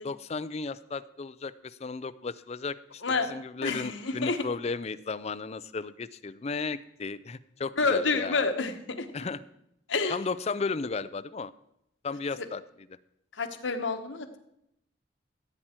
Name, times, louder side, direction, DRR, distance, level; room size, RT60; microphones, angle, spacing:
voice 1, 0.0-3.0 3.3-8.5 9.1-9.4 10.1-11.5 12.0-12.6, left 4 dB, 35° left, 14 dB, 0.4 m, -34 dB
voice 2, 3.6-4.4 7.8-9.1 9.9-10.2 12.4-12.5 13.4-14.4, left 4 dB, 80° left, 6 dB, 1.3 m, -28 dB
15.0 x 8.8 x 4.5 m, 0.78 s
head